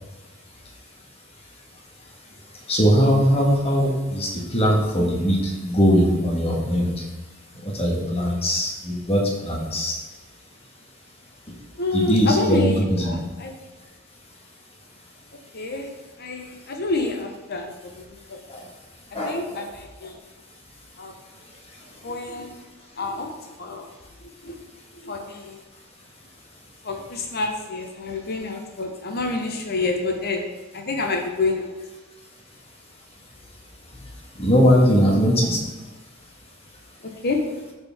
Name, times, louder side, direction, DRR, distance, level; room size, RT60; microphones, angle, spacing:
voice 1, 2.7-7.1 7.6-10.0 11.9-13.1 18.5-18.7 19.1-19.6 34.4-35.6, equal, 30° left, -1 dB, 1.7 m, -20 dB
voice 2, 11.8-13.5 15.5-15.9 16.2-18.0 18.3-18.4 19.3-20.1 21.0-21.1 22.0-22.5 23.0-23.3 23.6-23.9 24.4-24.5 25.0-25.6 26.8-30.4 30.7-31.7 37.2-37.4, left 3 dB, 45° left, 3 dB, 1.0 m, -28 dB
13.5 x 4.5 x 3.6 m, 1.2 s
head